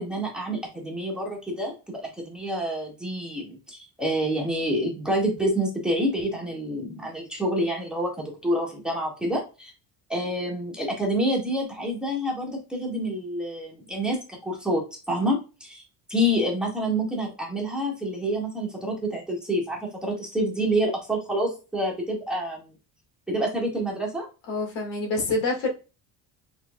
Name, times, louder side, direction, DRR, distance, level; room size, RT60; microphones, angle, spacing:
voice 1, 0.0-9.7 10.1-15.8 16.1-22.7 23.3-24.3, equal, ahead, -2 dB, 1.8 m, -28 dB
voice 2, 24.5-25.7, left 3 dB, 80° left, 0 dB, 2.1 m, -26 dB
4.9 x 4.1 x 2.3 m, 0.31 s
cardioid pair, 115°, 42 cm